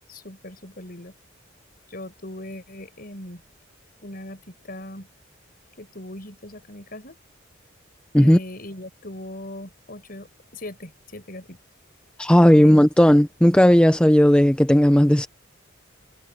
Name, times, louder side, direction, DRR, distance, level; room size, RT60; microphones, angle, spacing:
voice 1, 0.1-1.1 1.9-3.4 4.0-5.1 5.8-7.2 8.2-11.6 12.5-12.8, left 1 dB, 45° left, 5.3 m, -39 dB
voice 2, 12.2-15.3, equal, 5° left, 0.5 m, -15 dB
head